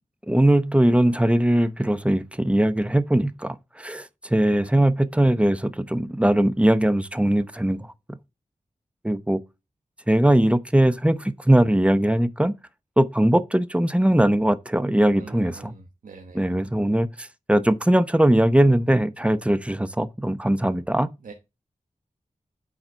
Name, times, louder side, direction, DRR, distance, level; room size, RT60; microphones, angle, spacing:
voice 1, 0.3-8.2 9.0-9.4 10.1-12.5 13.0-15.7 16.3-21.1, right 1 dB, 10° right, 0.8 m, -20 dB
voice 2, 15.2-16.4 21.2-21.3, right 4 dB, 85° right, 1.2 m, -44 dB
9.0 x 4.1 x 4.5 m
cardioid pair, 55°, 14 cm